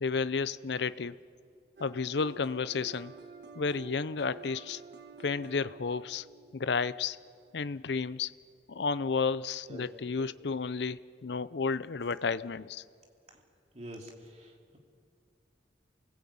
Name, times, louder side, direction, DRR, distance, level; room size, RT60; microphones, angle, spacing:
voice 1, 0.0-1.2 1.8-3.1 3.6-4.8 5.2-6.3 6.5-7.2 7.5-8.3 8.7-12.8, left 5 dB, 70° left, 16 dB, 0.6 m, -32 dB
sound 1, 1.8-7.6, right 5 dB, 65° right, 1.6 m, -50 dB
voice 2, 13.7-14.1 14.4-14.8, right 1 dB, 35° right, 1 dB, 3.0 m, -45 dB
28.5 x 20.0 x 8.6 m, 2.2 s
head